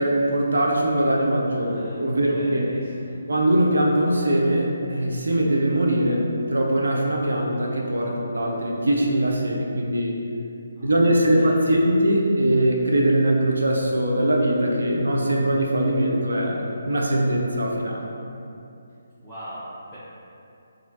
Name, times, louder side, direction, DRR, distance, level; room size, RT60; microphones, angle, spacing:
voice 1, 0.0-2.7 3.3-10.2 10.8-18.0, right 1 dB, 65° right, -1 dB, 0.4 m, -21 dB
voice 2, 1.6-3.2 10.7-11.9 19.2-20.0, equal, ahead, -19 dB, 0.6 m, -41 dB
3.0 x 2.3 x 2.6 m, 2.7 s
figure-of-eight pair, 145°, 0 cm